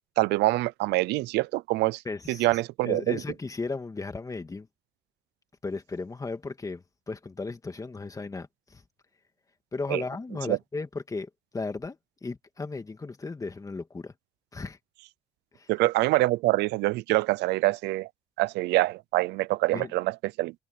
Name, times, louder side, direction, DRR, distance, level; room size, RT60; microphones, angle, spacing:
voice 1, 0.2-2.0 2.3-3.2 9.9-10.0 10.5-10.6 15.7-18.1 18.4-20.5, right 19 dB, 85° right, 0.6 m, -25 dB
voice 2, 2.0-4.7 5.6-8.8 9.7-14.1 14.5-14.8 15.5-15.7 19.7-19.9, left 3 dB, 20° left, 2.1 m, -35 dB
cardioid pair, 110°, 17 cm